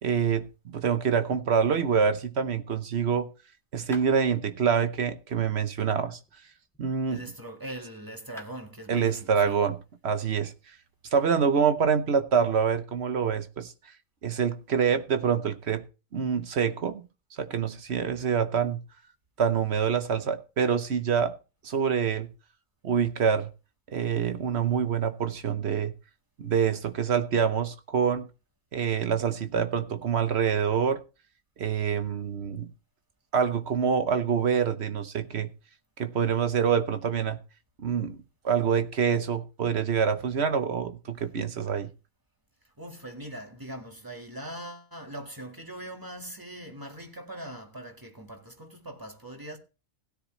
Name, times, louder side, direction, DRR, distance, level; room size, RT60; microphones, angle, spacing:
voice 1, 0.0-3.3 3.7-6.2 6.8-7.2 8.9-9.8 10.0-10.5 11.1-13.7 14.2-15.8 16.1-17.0 17.3-18.8 19.4-21.3 21.6-22.3 22.8-23.5 23.9-25.9 26.4-28.3 28.7-31.0 31.6-32.7 33.3-35.5 36.0-37.4 37.8-38.2 38.4-41.9, right 7 dB, 55° right, 1.1 m, -26 dB
sound 1, 3.9-4.1 6.1-7.4 8.0-8.1 8.4-8.6, right 1 dB, ahead, 1.9 m, -49 dB
voice 2, 7.1-9.6 42.8-49.6, right 1 dB, 15° right, 1.8 m, -41 dB
16.5 x 10.0 x 3.1 m
omnidirectional pair, 1.4 m